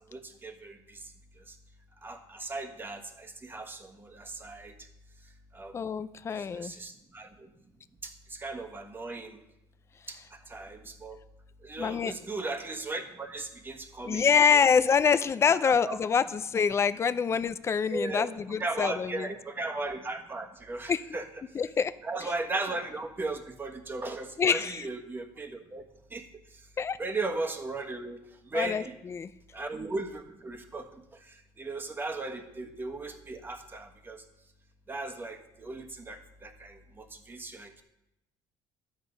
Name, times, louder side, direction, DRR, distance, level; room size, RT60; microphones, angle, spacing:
voice 1, 0.1-1.0 2.0-4.7 5.5-5.7 6.3-7.3 8.0-9.4 10.1-10.2 10.5-11.2 11.6-14.2 14.5-14.6 15.6-16.0 17.9-21.3 22.0-25.8 26.1-26.2 27.0-28.2 28.5-29.0 29.5-30.9 31.6-34.2 34.9-37.8, right 3 dB, 20° right, 5 dB, 1.3 m, -37 dB
voice 2, 5.7-6.7 11.8-12.1 14.1-19.3 20.9-21.0 21.5-21.9 24.4-24.8 26.8-27.0 28.5-29.3, left 6 dB, 30° left, 14 dB, 0.5 m, -26 dB
12.0 x 7.9 x 5.3 m, 0.88 s
cardioid pair, 120°, 10 cm